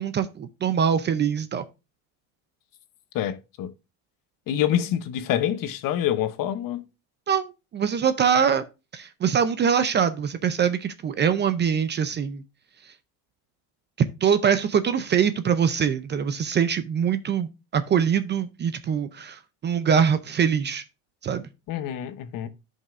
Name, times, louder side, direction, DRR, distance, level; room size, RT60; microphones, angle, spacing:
voice 1, 0.0-1.6 7.3-8.6 8.9-12.4 14.0-20.8 21.2-21.5, right 7 dB, 25° right, 0.5 m, -23 dB
voice 2, 3.1-3.7 4.5-6.8 21.7-22.5, left 11 dB, 50° left, 0.9 m, -26 dB
12.5 x 5.5 x 2.5 m
cardioid pair, 135°, 43 cm